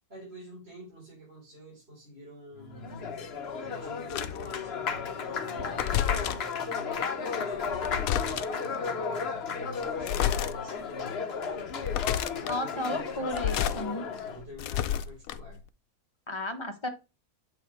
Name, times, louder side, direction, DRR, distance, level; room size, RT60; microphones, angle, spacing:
voice 1, 0.1-3.1 3.6-7.1 7.4-11.2 12.3-13.8 14.2-15.6, right 1 dB, 40° right, 3.9 m, -47 dB
Applause, 2.6-14.4, left 6 dB, 50° left, 1.0 m, -34 dB
sound 1, 4.1-4.5 5.6-6.5 7.6-8.7 10.0-10.5 11.0-11.1 11.7-12.5 13.2-13.8 14.2-15.6, left 10 dB, 75° left, 1.0 m, -30 dB
voice 2, 12.5-14.0 16.3-16.9, left 1 dB, 20° left, 0.9 m, -33 dB
7.5 x 6.1 x 3.1 m
omnidirectional pair, 1.6 m